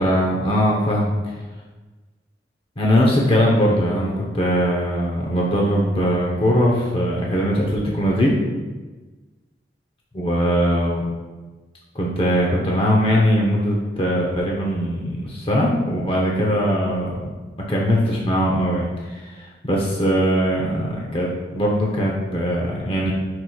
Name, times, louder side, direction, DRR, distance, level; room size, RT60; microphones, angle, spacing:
voice 1, 0.0-1.3 2.8-8.4 10.1-11.1 11.9-17.3 17.7-23.1, equal, 30° left, -2 dB, 0.8 m, -20 dB
10.0 x 4.8 x 2.3 m, 1.3 s
head